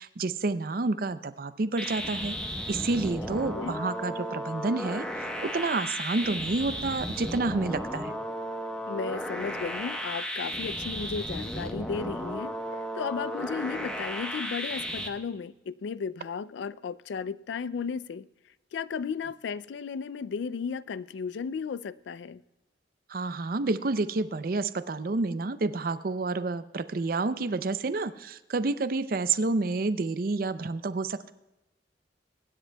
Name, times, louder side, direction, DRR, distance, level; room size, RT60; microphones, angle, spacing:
voice 1, 0.0-2.3 2.7-8.1 23.1-31.3, right 3 dB, 50° right, 0.5 m, -29 dB
sound 1, 1.8-15.1, equal, 5° left, 0.9 m, -34 dB
voice 2, 8.9-12.6 13.0-18.3 18.7-22.4, left 6 dB, 75° left, 0.3 m, -34 dB
24.0 x 9.9 x 2.2 m
head